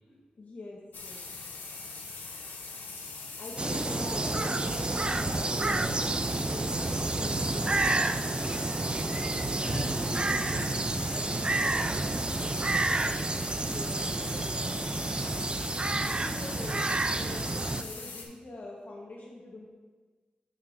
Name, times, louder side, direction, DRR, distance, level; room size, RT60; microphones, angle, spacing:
voice 1, 0.3-1.3 3.4-6.1 6.5-8.1 12.7-14.0 14.3-15.1 16.0-19.7, left 2 dB, 60° left, -4 dB, 1.1 m, -44 dB
sound 1, 0.9-18.2, left 4 dB, 85° left, 0.9 m, -42 dB
sound 2, 3.1-6.8, left 2 dB, 45° left, 1.1 m, -45 dB
sound 3, 3.6-17.8, right 2 dB, 30° right, 0.4 m, -30 dB
voice 2, 9.3-12.7, left 1 dB, 20° left, -7 dB, 1.5 m, -41 dB
8.6 x 6.8 x 2.6 m, 1.4 s
cardioid pair, 60°, 3 cm